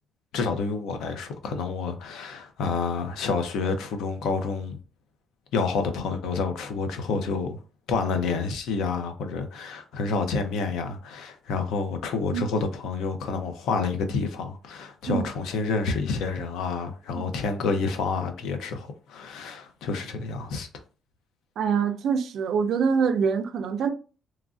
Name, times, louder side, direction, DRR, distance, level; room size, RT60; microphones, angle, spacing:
voice 1, 0.3-4.8 5.5-7.6 7.9-20.7, left 4 dB, 90° left, 0.6 m, -29 dB
voice 2, 21.6-23.9, right 6 dB, 55° right, 0.4 m, -24 dB
3.0 x 2.4 x 2.4 m
cardioid pair, 180°, 0 cm